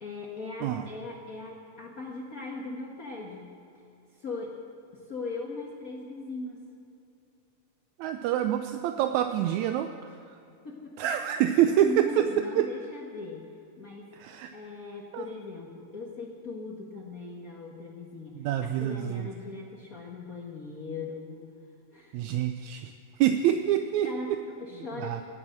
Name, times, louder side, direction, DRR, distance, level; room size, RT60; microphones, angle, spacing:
voice 1, 0.0-3.6 4.1-4.5 4.9-6.7 10.6-10.9 11.3-13.4 13.8-14.1 14.5-21.5 21.9-22.2 24.0-25.2, left 3 dB, 70° left, -1 dB, 0.8 m, -39 dB
voice 2, 8.0-9.9 11.0-12.3 12.6-12.7 14.1-14.5 15.1-15.3 18.4-19.3 22.1-24.1 25.0-25.2, right 11 dB, 80° right, 7 dB, 1.7 m, -26 dB
17.0 x 8.9 x 7.6 m, 2.7 s
omnidirectional pair, 3.7 m